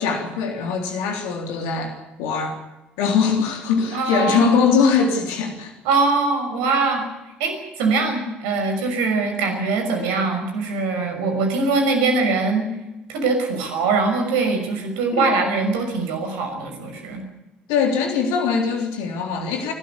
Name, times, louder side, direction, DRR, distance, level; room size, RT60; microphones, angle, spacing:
voice 1, 0.0-2.6 3.0-5.7 15.1-15.3 17.7-19.7, left 5 dB, 70° left, 4 dB, 3.5 m, -21 dB
voice 2, 3.9-4.5 5.8-7.1 7.4-12.6 13.1-17.2, right 3 dB, 75° right, 5 dB, 5.9 m, -22 dB
30.0 x 13.0 x 8.3 m, 0.99 s
hypercardioid pair, 55°, 5 cm